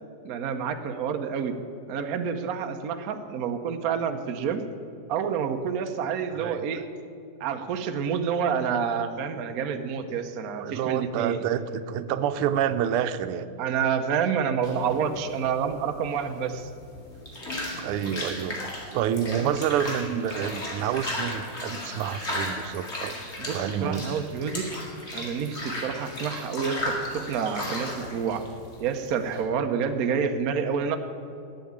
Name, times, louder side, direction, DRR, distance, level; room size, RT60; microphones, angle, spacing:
voice 1, 0.2-1.6 1.9-4.7 5.1-6.9 7.4-11.4 13.6-16.7 19.2-19.5 23.4-24.7 25.1-28.5 28.8-31.0, right 7 dB, 55° right, 7 dB, 1.0 m, -28 dB
voice 2, 10.6-13.5 17.8-18.6 18.9-23.1 23.5-24.0, right 9 dB, 90° right, 12 dB, 1.5 m, -28 dB
sound 1, 14.6-29.4, left 1 dB, 30° left, 2.4 m, -35 dB
11.5 x 8.4 x 8.7 m, 2.6 s
omnidirectional pair, 2.4 m